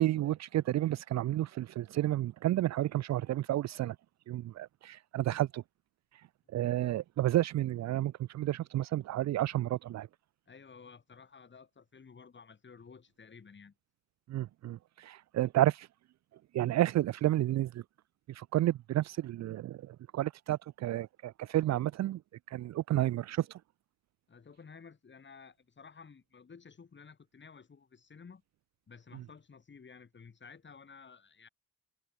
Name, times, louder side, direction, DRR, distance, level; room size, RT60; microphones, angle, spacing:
voice 1, 0.0-4.0 4.3-5.6 6.5-10.1 14.3-15.9 16.5-17.8 18.3-22.2 22.5-23.6, right 14 dB, 65° right, 0.6 m, -31 dB
voice 2, 10.5-13.7 24.3-28.4 28.9-31.5, left 5 dB, 40° left, 7.3 m, -54 dB
cardioid pair, 90°, 30 cm